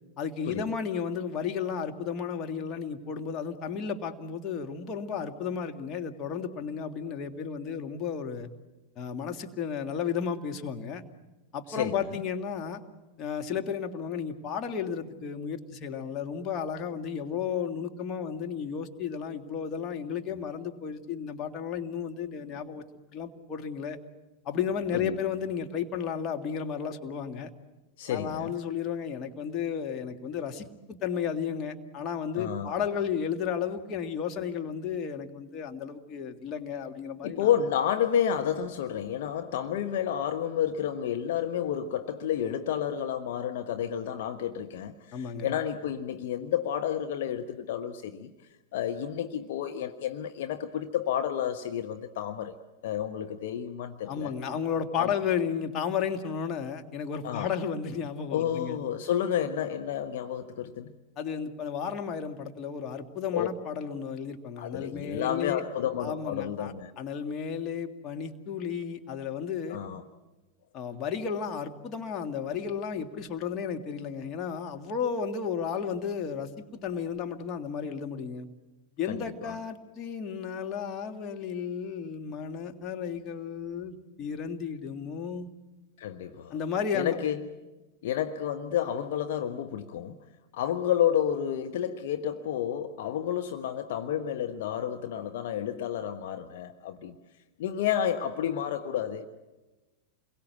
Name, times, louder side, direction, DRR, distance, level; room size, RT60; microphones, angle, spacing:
voice 1, 0.2-8.5 9.0-11.0 11.5-12.8 13.2-22.8 23.1-24.0 24.5-27.5 28.1-37.5 45.1-45.6 54.1-58.8 61.2-65.6 66.0-69.8 70.7-78.5 79.0-85.5 86.5-87.2, left 7 dB, 30° left, 2.0 m, -33 dB
voice 2, 11.7-12.1 24.9-25.2 28.0-28.5 32.3-32.8 37.2-48.3 48.7-52.5 52.8-54.3 55.0-55.1 57.2-57.5 58.3-60.9 63.3-63.5 64.6-66.9 69.7-70.0 79.1-79.6 86.0-86.5 86.9-87.4 88.0-90.2 90.5-97.2 97.6-99.3, left 9 dB, 55° left, 1.1 m, -30 dB
28.5 x 22.5 x 8.3 m
figure-of-eight pair, 90°, 0 cm